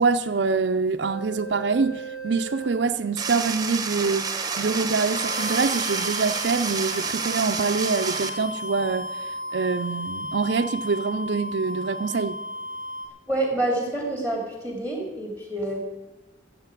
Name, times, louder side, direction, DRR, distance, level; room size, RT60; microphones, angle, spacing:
voice 1, 0.0-4.3 4.6-12.4, right 4 dB, 75° right, 0.6 m, -25 dB
sound 1, 1.0-3.1 5.0-13.1, equal, 85° left, 2.4 m, -35 dB
sound 2, 3.2-8.3, right 5 dB, 20° right, 1.1 m, -29 dB
voice 2, 13.3-15.8, right 1 dB, 10° left, 3.0 m, -27 dB
13.5 x 7.7 x 8.4 m
head